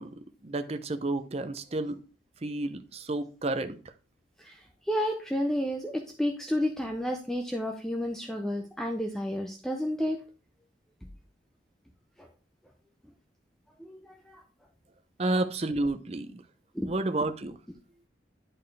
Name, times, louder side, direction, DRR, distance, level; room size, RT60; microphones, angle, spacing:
voice 1, 0.0-2.0 2.4-3.8 15.2-16.4 16.8-17.6, right 2 dB, 35° right, 0.6 m, -31 dB
voice 2, 4.9-10.2 12.2-12.3 13.8-14.4 16.7-16.9, equal, 5° left, 0.6 m, -31 dB
10.5 x 4.5 x 3.3 m
head